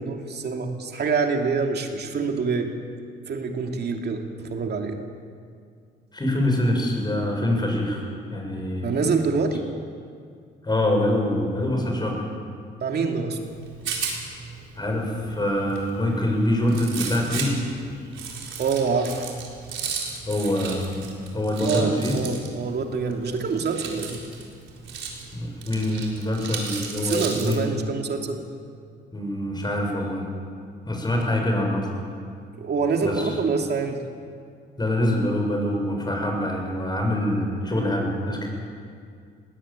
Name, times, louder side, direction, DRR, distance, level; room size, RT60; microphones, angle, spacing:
voice 1, 0.0-2.7 3.3-5.0 8.8-9.7 12.8-13.4 18.6-19.3 21.6-24.2 27.0-28.4 32.6-34.0, right 4 dB, 55° right, 3 dB, 2.7 m, -26 dB
voice 2, 6.1-8.9 10.6-12.2 14.8-17.6 20.2-22.1 25.3-27.6 29.1-30.2 30.9-31.9 33.0-33.3 34.8-38.5, left 1 dB, 20° left, 1 dB, 6.8 m, -25 dB
Rattle, 13.5-27.6, right 5 dB, 75° right, 4.4 m, -35 dB
19.5 x 18.0 x 9.0 m, 2.2 s
cardioid pair, 90°, 20 cm